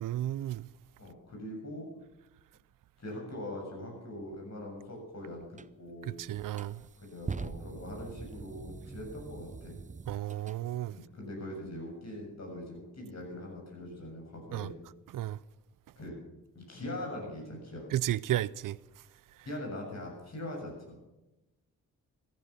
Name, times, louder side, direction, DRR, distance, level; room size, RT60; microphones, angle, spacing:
voice 1, 0.0-0.7 6.3-6.8 10.1-10.9 14.5-14.7 15.1-15.4 17.9-18.8, right 13 dB, 70° right, 0.5 m, -32 dB
voice 2, 1.0-1.9 3.0-5.5 5.8-6.2 7.0-9.8 10.9-14.7 16.0-16.2 16.5-17.9 19.4-21.0, left 1 dB, 50° left, 7.5 m, -42 dB
sound 1, 5.6-5.7 6.3-10.6, right 5 dB, 25° right, 0.6 m, -43 dB
15.0 x 11.0 x 7.0 m
cardioid pair, 65°, 34 cm